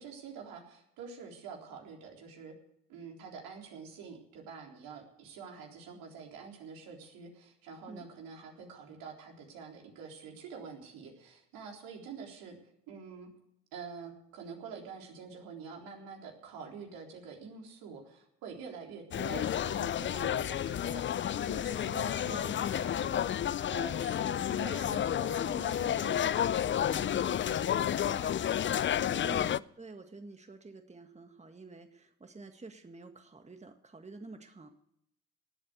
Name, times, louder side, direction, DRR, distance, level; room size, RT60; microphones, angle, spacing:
voice 1, 0.0-2.5 2.9-12.6 12.9-13.3 13.7-21.0 21.4-28.3 29.3-29.5, right 5 dB, 75° right, 1 dB, 3.8 m, -47 dB
sound 1, 19.1-29.6, left 10 dB, 35° left, 0.5 m, -31 dB
voice 2, 29.2-34.7, right 3 dB, 20° right, 7 dB, 1.8 m, -49 dB
18.5 x 8.6 x 8.1 m, 0.75 s
hypercardioid pair, 50°, 35 cm